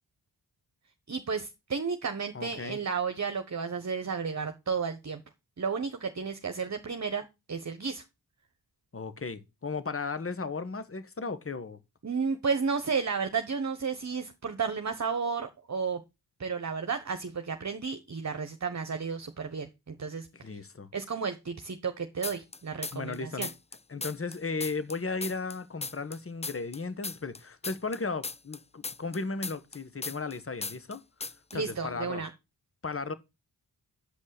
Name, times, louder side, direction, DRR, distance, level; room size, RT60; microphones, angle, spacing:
voice 1, 1.1-5.2 5.6-8.0 12.0-16.0 16.4-20.6 20.9-23.5 31.5-32.3, right 5 dB, 45° right, 1.2 m, -32 dB
voice 2, 2.3-2.8 8.9-11.8 20.3-20.9 22.9-23.5 23.9-31.0 31.5-32.2 32.8-33.1, left 4 dB, 35° left, 1.3 m, -35 dB
sound 1, 22.2-23.2 23.4-26.2 26.4-30.4 30.6-31.0 31.2-31.6, left 4 dB, 15° left, 0.5 m, -37 dB
8.4 x 5.4 x 6.5 m
cardioid pair, 55°, 40 cm